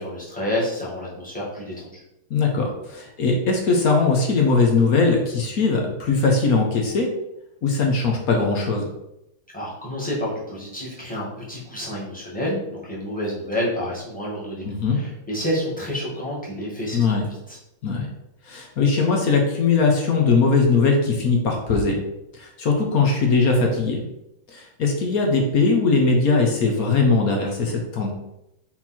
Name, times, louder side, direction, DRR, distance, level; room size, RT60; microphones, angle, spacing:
voice 1, 0.0-2.0 9.5-14.7 14.9-17.6, equal, 5° left, -7 dB, 1.8 m, -29 dB
voice 2, 2.3-7.1 7.6-8.9 14.7-15.0 16.9-17.2 17.8-18.1 18.5-22.0 22.3-24.0 24.5-28.1, left 4 dB, 55° left, 1 dB, 1.1 m, -20 dB
6.0 x 4.1 x 4.4 m, 0.86 s
omnidirectional pair, 2.4 m